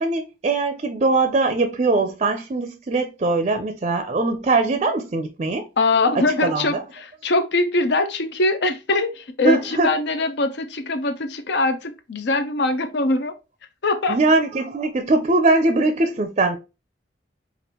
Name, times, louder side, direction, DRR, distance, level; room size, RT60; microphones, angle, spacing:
voice 1, 0.0-5.6 6.1-6.8 9.4-9.9 14.1-16.6, right 3 dB, 35° right, 0.5 m, -21 dB
voice 2, 5.8-13.3 13.8-14.2, left 2 dB, 65° left, 0.6 m, -22 dB
5.1 x 2.5 x 2.9 m
head